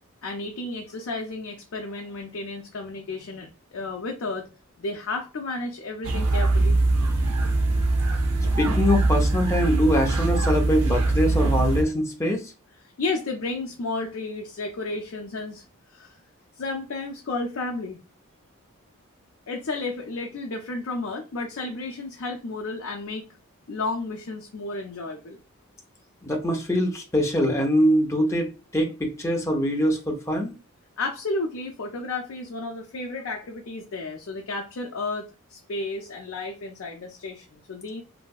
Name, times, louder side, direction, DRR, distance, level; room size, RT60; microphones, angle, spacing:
voice 1, 0.2-4.5 4.8-6.8 13.0-15.6 15.9-16.2 16.6-18.0 19.5-23.3 23.7-25.4 31.0-38.0, left 3 dB, 65° left, 0.5 m, -32 dB
sound 1, 6.0-11.8, right 2 dB, 85° right, 0.7 m, -22 dB
voice 2, 8.6-12.5 26.2-30.5, equal, 15° left, 0.6 m, -23 dB
3.1 x 2.6 x 2.3 m
head